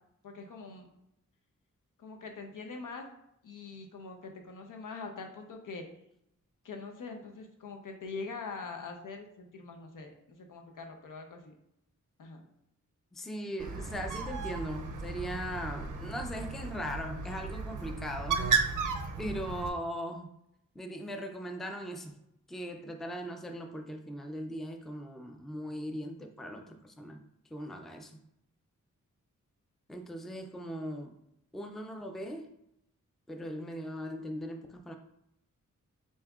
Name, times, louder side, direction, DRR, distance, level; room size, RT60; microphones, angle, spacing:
voice 1, 0.2-0.9 2.0-3.0 3.4-5.9 6.6-11.6 12.2-12.5, left 4 dB, 90° left, 3 dB, 0.8 m, -43 dB
voice 2, 13.1-18.5 19.2-20.3 20.7-22.2 22.5-27.2 27.5-28.2 29.9-31.1 31.5-32.5 33.3-35.0, equal, ahead, 5 dB, 0.3 m, -39 dB
Bird, 13.6-19.7, right 5 dB, 80° right, 0.5 m, -34 dB
7.1 x 2.7 x 2.3 m, 0.80 s
wide cardioid pair, 165°, 31 cm